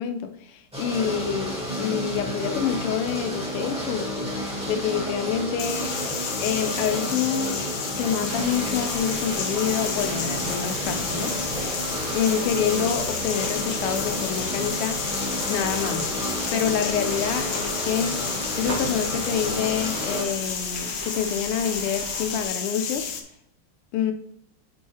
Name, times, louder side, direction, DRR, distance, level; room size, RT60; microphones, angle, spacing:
voice 1, 0.0-4.1 4.7-6.0 6.4-7.7 7.9-11.3 12.1-15.0 15.5-16.0 16.5-18.2 18.6-23.1 23.9-24.1, left 8 dB, 90° left, 8 dB, 1.6 m, -27 dB
sound 1, 0.7-20.2, equal, 5° right, 0.9 m, -31 dB
sound 2, 5.6-23.2, left 7 dB, 70° left, 1.3 m, -32 dB
sound 3, 8.2-22.5, right 3 dB, 85° right, 2.1 m, -37 dB
5.5 x 4.2 x 4.6 m, 0.70 s
omnidirectional pair, 2.4 m